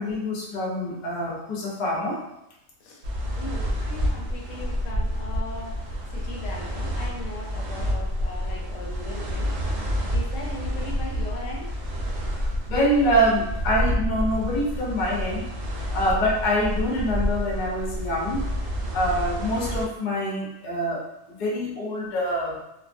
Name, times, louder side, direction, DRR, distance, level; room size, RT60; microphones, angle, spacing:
voice 1, 0.0-2.2 12.3-15.5 15.9-18.5 18.9-22.6, equal, 50° left, -3 dB, 0.6 m, -25 dB
sound 1, 3.0-19.8, equal, 70° right, 0.8 m, -29 dB
voice 2, 3.3-9.5 10.1-11.7, left 2 dB, 75° left, -2 dB, 0.9 m, -38 dB
2.3 x 2.2 x 2.5 m, 0.85 s
omnidirectional pair, 1.3 m